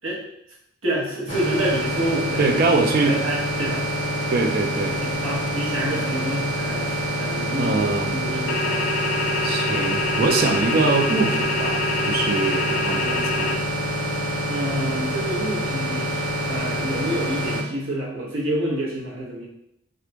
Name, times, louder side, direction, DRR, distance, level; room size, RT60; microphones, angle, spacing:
voice 1, 0.8-2.6 2.9-3.8 5.0-8.8 14.5-19.5, right 1 dB, 80° right, -5 dB, 1.1 m, -28 dB
sound 1, 1.3-17.6, right 1 dB, 40° left, 0.7 m, -26 dB
voice 2, 2.4-3.2 4.3-5.0 7.6-8.1 9.4-13.5, right 3 dB, 45° right, 3 dB, 0.4 m, -23 dB
sound 2, 8.5-13.5, left 2 dB, 55° left, 0.3 m, -26 dB
3.3 x 2.4 x 3.0 m, 0.78 s
head